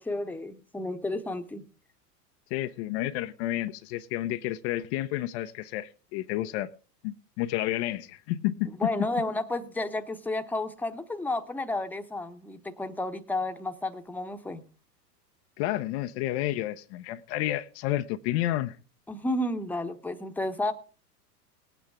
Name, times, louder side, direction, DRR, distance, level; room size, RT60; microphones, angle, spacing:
voice 1, 0.0-1.7 8.8-14.6 19.1-20.7, left 2 dB, 5° left, 1.0 m, -32 dB
voice 2, 2.5-6.7 7.0-8.7 15.6-18.8, left 14 dB, 45° left, 0.7 m, -30 dB
19.0 x 9.1 x 3.5 m
figure-of-eight pair, 95°, 48 cm